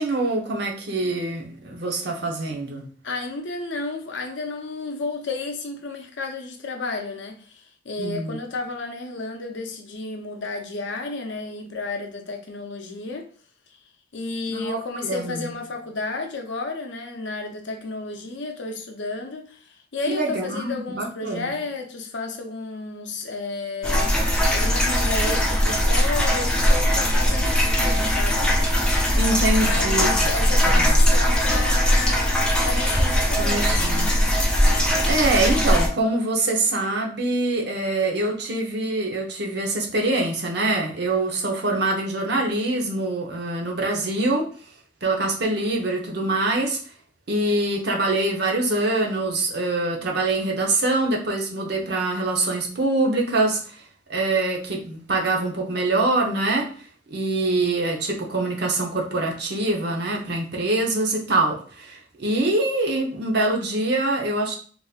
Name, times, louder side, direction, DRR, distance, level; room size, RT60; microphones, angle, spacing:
voice 1, 0.0-2.8 8.0-8.4 14.5-14.8 15.0-15.5 20.1-21.5 29.1-30.1 30.6-30.8 33.4-34.1 35.1-44.5 45.0-46.8 47.3-53.8 54.1-56.7 57.1-64.6, right 2 dB, 60° right, 0.8 m, -24 dB
voice 2, 3.0-13.3 14.1-24.1 24.5-28.5 29.6-32.3 32.6-34.2, left 3 dB, 70° left, 0.6 m, -32 dB
sound 1, 23.8-35.9, equal, 5° left, 0.5 m, -20 dB
3.9 x 2.6 x 2.4 m
head